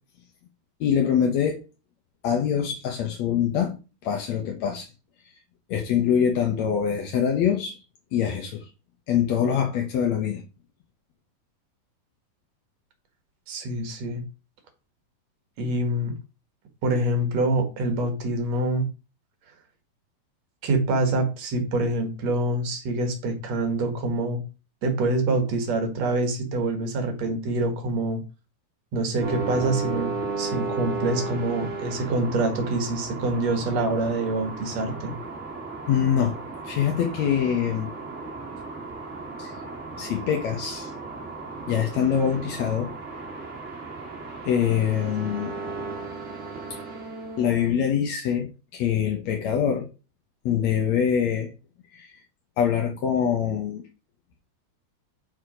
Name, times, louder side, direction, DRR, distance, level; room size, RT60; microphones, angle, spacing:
voice 1, 0.8-1.6 2.2-4.9 5.7-7.8 8.1-8.7 9.1-10.4 35.9-36.4 36.6-37.9 39.4-39.5 40.0-40.9 41.7-42.9 44.4-45.5 46.7-46.8 47.4-49.9 50.4-51.5 51.9-52.2 52.6-53.8, left 8 dB, 65° left, 1.8 m, -24 dB
voice 2, 13.5-14.2 15.6-16.2 16.8-18.8 20.6-24.4 24.8-28.2 28.9-35.1, right 2 dB, 55° right, 2.2 m, -26 dB
sound 1, 29.2-47.7, right 4 dB, 25° right, 1.6 m, -35 dB
9.4 x 4.4 x 5.1 m
omnidirectional pair, 4.5 m